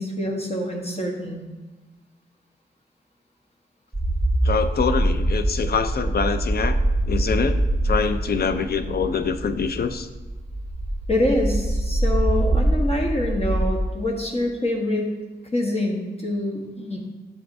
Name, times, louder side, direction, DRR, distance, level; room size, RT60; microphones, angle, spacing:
voice 1, 0.0-1.5 11.1-15.1 15.5-17.1, left 1 dB, 35° left, 0 dB, 1.1 m, -25 dB
sound 1, 3.9-13.8, right 1 dB, 10° left, 2.4 m, -24 dB
voice 2, 4.4-6.8 7.1-10.1, left 5 dB, 65° left, 9 dB, 0.5 m, -25 dB
10.0 x 7.0 x 2.6 m, 1.2 s
wide cardioid pair, 120°, 18 cm